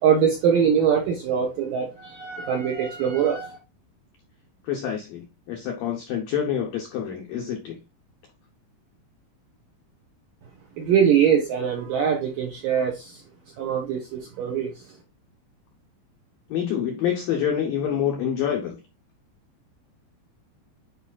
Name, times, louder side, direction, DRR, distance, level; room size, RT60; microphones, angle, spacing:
voice 1, 0.0-3.6 10.8-13.2 13.6-14.8, right 7 dB, 75° right, 2.0 m, -22 dB
voice 2, 4.6-7.8 16.5-18.8, left 9 dB, 80° left, 2.0 m, -27 dB
10.0 x 4.8 x 2.3 m
omnidirectional pair, 5.4 m